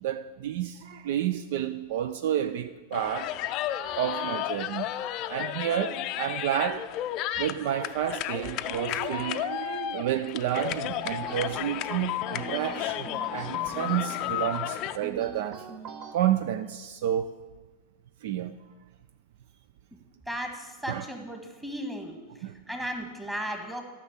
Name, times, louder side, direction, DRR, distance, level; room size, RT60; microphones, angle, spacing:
voice 1, 0.0-3.4 4.0-4.9 5.3-6.9 7.4-15.7 16.1-17.3 18.2-18.5 20.9-21.0 22.4-22.5, right 11 dB, 50° right, 0.4 m, -30 dB
sound 1, 2.9-15.0, left 13 dB, 40° left, 0.5 m, -33 dB
sound 2, 10.9-16.2, right 6 dB, 35° right, 0.9 m, -43 dB
voice 2, 20.3-22.2 22.7-23.8, equal, 5° right, 1.5 m, -35 dB
12.5 x 6.1 x 7.3 m
figure-of-eight pair, 90°, 0 cm